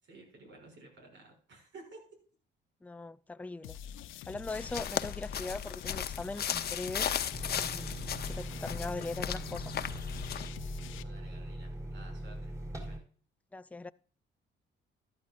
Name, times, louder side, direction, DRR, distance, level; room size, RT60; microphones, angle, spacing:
voice 1, 0.0-2.0 10.8-13.0, right 3 dB, 65° right, 6.4 m, -54 dB
voice 2, 2.8-3.8 4.3-7.3 7.5-9.7 13.5-13.9, left 3 dB, 5° left, 0.4 m, -40 dB
sound 1, 3.6-11.0, left 9 dB, 90° left, 0.7 m, -45 dB
sound 2, 4.5-10.5, left 9 dB, 50° left, 0.8 m, -36 dB
sound 3, 7.3-13.0, right 1 dB, 15° right, 4.0 m, -41 dB
14.5 x 11.0 x 2.5 m
cardioid pair, 90°, 20 cm